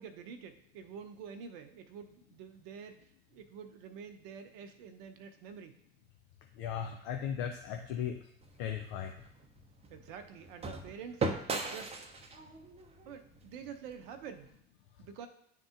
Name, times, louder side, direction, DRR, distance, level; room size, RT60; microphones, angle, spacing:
voice 1, 0.0-3.0 3.3-5.7 9.9-11.3 11.6-11.9 13.1-14.5 15.0-15.3, right 7 dB, 55° right, 8 dB, 0.7 m, -47 dB
voice 2, 6.6-8.2 8.6-9.1, left 8 dB, 55° left, 4 dB, 0.6 m, -36 dB
sound 1, 8.4-14.5, right 3 dB, 20° right, 0.7 m, -40 dB
10.5 x 3.7 x 2.5 m, 0.70 s
figure-of-eight pair, 70°, 32 cm